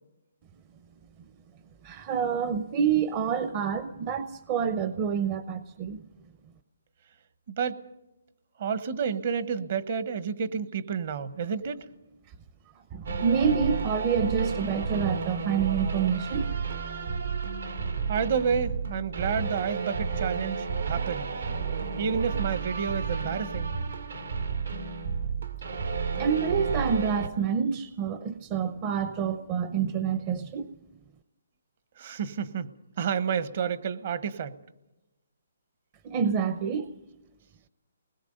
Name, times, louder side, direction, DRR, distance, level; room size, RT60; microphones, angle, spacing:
voice 1, 1.8-6.0 12.9-16.5 26.1-30.7 36.0-36.9, right 7 dB, 25° right, 11 dB, 0.7 m, -27 dB
voice 2, 7.5-7.8 8.6-11.9 18.1-21.3 22.0-23.7 32.0-34.6, right 6 dB, 45° right, 13 dB, 1.1 m, -30 dB
sound 1, 13.1-27.3, right 5 dB, 80° right, 2.2 m, -32 dB
28.5 x 20.5 x 5.4 m, 0.96 s
hypercardioid pair, 165°, 0 cm